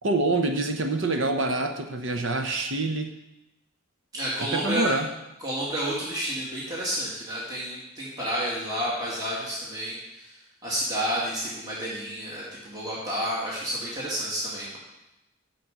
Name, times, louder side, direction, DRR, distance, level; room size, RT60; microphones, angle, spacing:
voice 1, 0.0-3.1 4.4-5.1, right 2 dB, 65° right, 5 dB, 0.8 m, -26 dB
voice 2, 4.1-4.9 5.4-10.3 10.6-14.7, equal, 20° right, -7 dB, 2.1 m, -30 dB
7.4 x 6.3 x 8.0 m, 0.92 s
head